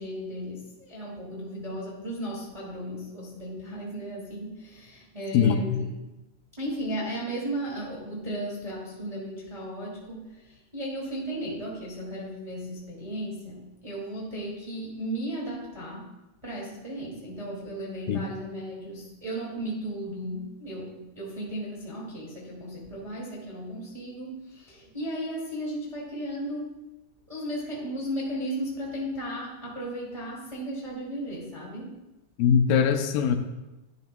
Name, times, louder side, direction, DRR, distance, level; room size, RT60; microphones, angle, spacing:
voice 1, 0.0-5.9 6.6-16.1 16.4-26.8 27.3-32.0, right 1 dB, 15° right, -5 dB, 1.3 m, -35 dB
voice 2, 5.3-5.8 18.1-18.2 32.4-33.4, left 7 dB, 85° left, 7 dB, 2.4 m, -22 dB
11.0 x 10.5 x 2.2 m, 1.0 s
omnidirectional pair, 3.9 m